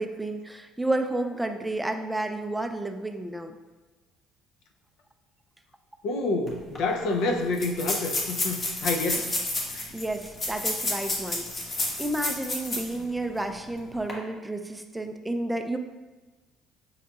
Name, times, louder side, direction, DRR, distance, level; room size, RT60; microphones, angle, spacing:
voice 1, 0.0-3.6 9.2-9.3 9.9-11.5 12.0-15.8, right 1 dB, 5° right, 6 dB, 0.3 m, -31 dB
voice 2, 6.0-9.3 9.7-9.9, left 2 dB, 70° left, 4 dB, 0.5 m, -28 dB
sound 1, 6.5-6.6 6.7-6.8 7.5-13.0 13.4-13.5 13.9-14.1, left 2 dB, 40° left, 1.1 m, -30 dB
5.5 x 3.8 x 2.3 m, 1.2 s
cardioid pair, 95°, 0 cm